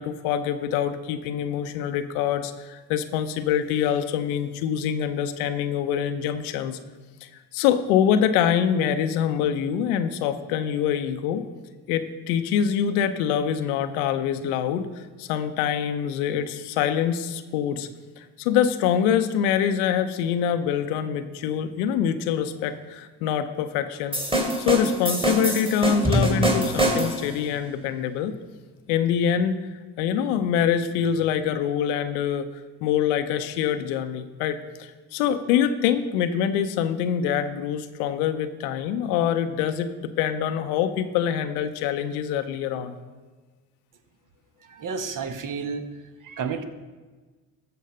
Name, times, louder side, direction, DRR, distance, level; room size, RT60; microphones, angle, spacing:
voice 1, 0.0-6.8 7.5-11.5 11.9-17.9 18.2-24.2 24.6-28.4 28.9-29.6 30.0-32.5 32.8-42.9, left 8 dB, 90° left, 9 dB, 0.7 m, -25 dB
sound 1, 24.1-27.3, right 1 dB, 15° right, 2.4 m, -24 dB
voice 2, 44.6-45.9 46.2-46.7, right 5 dB, 45° right, 9 dB, 1.1 m, -31 dB
13.5 x 4.6 x 6.5 m, 1.3 s
hypercardioid pair, 55°, 43 cm